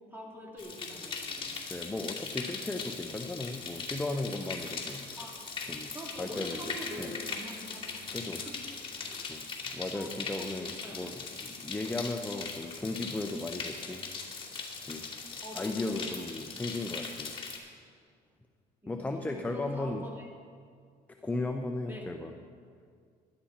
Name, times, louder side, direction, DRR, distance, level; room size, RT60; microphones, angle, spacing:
voice 1, 0.1-1.5 5.2-5.4 5.9-8.0 8.4-8.6 9.0-9.3 9.9-11.1 15.4-16.1 18.8-20.3 21.8-22.1, equal, 10° right, -2 dB, 3.2 m, -45 dB
sound 1, 0.6-17.6, left 4 dB, 30° left, 2.4 m, -40 dB
voice 2, 1.7-5.1 5.7-7.1 8.1-8.4 9.3-14.0 14.5-15.1 15.5-17.4 18.9-20.1 21.2-22.3, left 2 dB, 10° left, 4 dB, 0.7 m, -36 dB
16.0 x 11.5 x 4.3 m, 2.1 s
cardioid pair, 110°, 17 cm